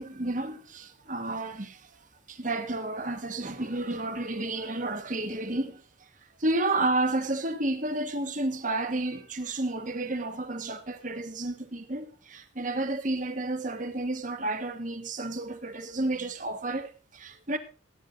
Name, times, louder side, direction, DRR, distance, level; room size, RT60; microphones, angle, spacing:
voice 1, 0.0-5.8 6.4-17.6, right 2 dB, 40° right, 1.4 m, -31 dB
16.5 x 9.4 x 3.9 m
head